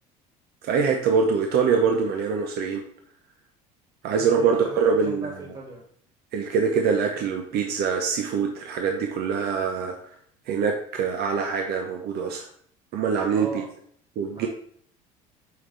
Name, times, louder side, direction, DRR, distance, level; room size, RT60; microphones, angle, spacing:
voice 1, 0.6-2.8 4.0-5.3 6.3-10.0 10.5-12.5 12.9-13.6 14.2-14.5, right 6 dB, 55° right, 3 dB, 0.9 m, -24 dB
voice 2, 4.2-5.8 13.3-13.7 14.3-14.5, right 2 dB, 30° right, -1 dB, 2.1 m, -37 dB
9.1 x 3.7 x 3.3 m, 0.62 s
hypercardioid pair, 75°, 19 cm